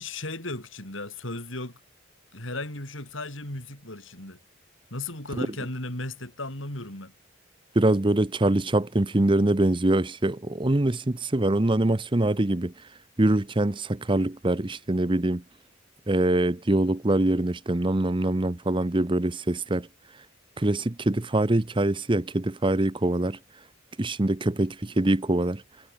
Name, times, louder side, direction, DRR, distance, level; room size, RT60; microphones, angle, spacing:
voice 1, 0.0-1.8 2.3-4.4 4.9-7.1, left 2 dB, 75° left, 7.3 m, -35 dB
voice 2, 7.7-12.9 13.2-15.4 16.1-19.9 20.6-23.4 24.0-25.6, right 1 dB, 25° right, 0.8 m, -24 dB
head